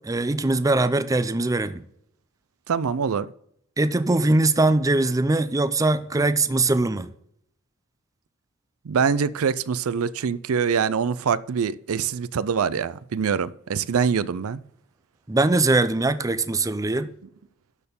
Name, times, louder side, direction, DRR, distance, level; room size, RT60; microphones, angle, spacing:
voice 1, 0.0-1.8 3.8-7.1 15.3-17.1, right 2 dB, 15° right, 0.5 m, -21 dB
voice 2, 2.7-3.3 8.9-14.6, right 6 dB, 75° right, 0.5 m, -24 dB
12.0 x 4.3 x 6.9 m
head